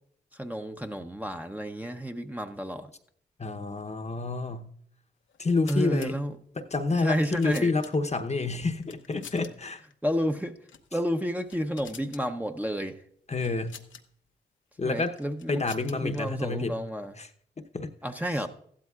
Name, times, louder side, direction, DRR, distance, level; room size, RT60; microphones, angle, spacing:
voice 1, 0.3-2.9 5.7-6.4 7.0-7.8 10.0-10.6 10.9-13.0 14.8-15.6 16.0-17.2 18.0-18.5, equal, 10° right, 4 dB, 0.7 m, -31 dB
voice 2, 3.4-4.7 5.4-6.1 6.6-9.8 13.3-13.7 14.8-15.2 15.5-16.7 17.2-17.3 17.6-17.9, left 3 dB, 35° left, 7 dB, 0.9 m, -28 dB
sound 1, 5.3-6.1 7.0-8.2 8.8-9.5 9.8-9.9 10.6-10.9 11.3-12.2 13.4-14.0 15.0-16.2, left 7 dB, 70° left, 0.8 m, -48 dB
14.5 x 12.5 x 2.4 m, 0.64 s
supercardioid pair, 45°, 20 cm